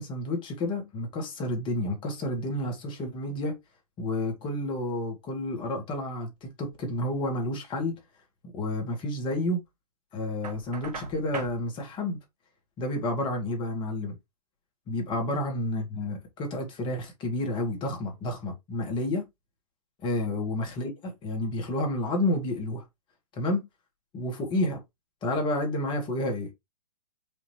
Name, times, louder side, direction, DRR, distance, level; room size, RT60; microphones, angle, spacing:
voice 1, 0.0-3.6 4.0-8.0 8.5-9.6 10.1-12.2 12.8-14.2 14.9-19.3 20.0-22.8 23.3-23.7 24.1-24.8 25.2-26.5, left 1 dB, 25° left, 1.7 m, -30 dB
Knock, 10.4-11.6, right 4 dB, 80° right, 1.4 m, -39 dB
5.0 x 2.9 x 3.1 m
hypercardioid pair, 125°, 20 cm